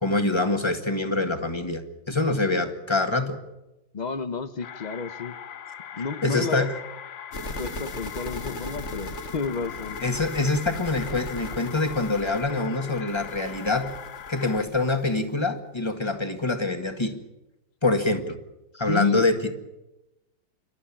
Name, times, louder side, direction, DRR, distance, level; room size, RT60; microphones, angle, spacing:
voice 1, 0.0-3.4 6.2-6.8 10.0-13.9 14.3-17.2 17.8-18.4 18.7-19.7, left 2 dB, 15° left, 6 dB, 1.7 m, -25 dB
voice 2, 3.9-5.3 6.0-6.7 7.6-10.0 18.9-19.2, left 4 dB, 65° left, 10 dB, 0.4 m, -31 dB
sound 1, 4.6-14.7, left 9 dB, 80° left, 1.7 m, -40 dB
sound 2, 7.3-15.4, left 1 dB, 35° left, 1.9 m, -38 dB
28.5 x 13.0 x 10.0 m, 0.99 s
omnidirectional pair, 2.1 m